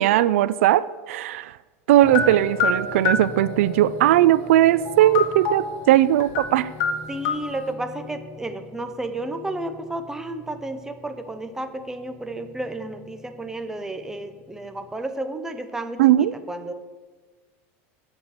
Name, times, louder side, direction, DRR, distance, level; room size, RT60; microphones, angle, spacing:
voice 1, 0.0-1.6 1.9-6.7 16.0-16.3, right 13 dB, 85° right, 17 dB, 0.4 m, -18 dB
sound 1, 2.0-15.0, equal, 10° left, 1.6 m, -40 dB
sound 2, 2.1-3.3 4.8-5.7 6.2-6.5 6.8-7.5, left 5 dB, 60° left, 1.6 m, -25 dB
voice 2, 7.1-16.7, right 2 dB, 5° right, 8 dB, 0.8 m, -32 dB
8.1 x 6.7 x 7.9 m, 1.4 s
supercardioid pair, 130°, 7 cm